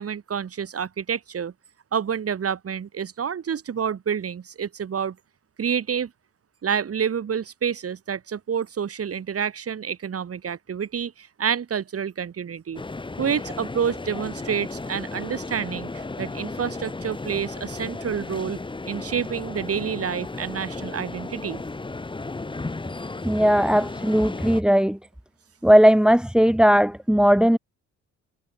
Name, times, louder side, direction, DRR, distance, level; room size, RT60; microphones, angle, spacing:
voice 1, 0.0-1.5 1.9-5.2 5.6-6.1 6.6-12.8 13.2-18.6 18.9-21.6, right 7 dB, 50° right, 5.8 m, -28 dB
sound 1, 12.7-24.6, left 3 dB, 15° left, 1.6 m, -34 dB
voice 2, 23.2-25.0 25.6-27.6, equal, 5° right, 2.2 m, -17 dB
cardioid pair, 90°, 30 cm